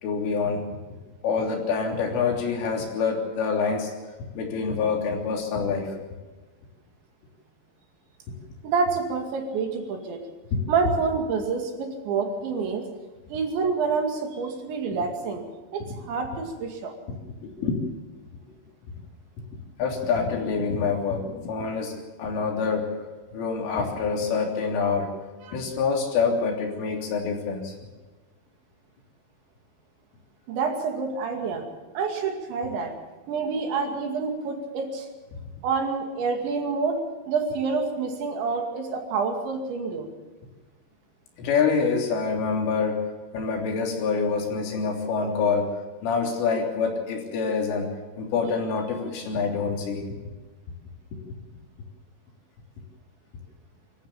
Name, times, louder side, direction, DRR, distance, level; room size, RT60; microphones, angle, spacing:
voice 1, 0.0-0.6 1.2-3.9 4.4-5.9 10.5-10.6 17.4-17.8 19.8-22.9 23.3-25.1 25.5-27.7 41.4-43.0 43.3-45.7 46.0-47.9 48.2-50.1 51.1-51.2, left 5 dB, 80° left, 1 dB, 5.8 m, -26 dB
voice 2, 8.6-10.2 10.7-12.9 13.3-15.4 15.7-16.9 25.4-25.6 30.5-31.7 31.9-32.9 33.3-35.1 35.6-37.0 37.3-40.1, right 5 dB, 70° right, 3 dB, 4.5 m, -27 dB
24.5 x 14.5 x 7.3 m, 1.2 s
omnidirectional pair, 5.6 m